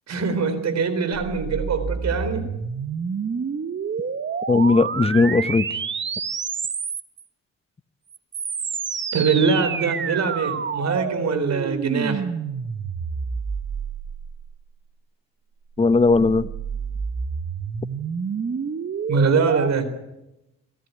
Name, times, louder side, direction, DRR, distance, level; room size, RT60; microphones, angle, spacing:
voice 1, 0.1-2.5 9.1-12.2 19.1-19.9, right 5 dB, 60° right, 12 dB, 4.2 m, -23 dB
sound 1, 1.1-7.2 8.1-14.7 15.8-19.7, right 6 dB, 40° right, 1.4 m, -29 dB
voice 2, 4.5-5.8 15.8-16.5, left 3 dB, 20° left, 15 dB, 0.9 m, -18 dB
24.5 x 14.5 x 9.6 m, 0.92 s
cardioid pair, 90°, 30 cm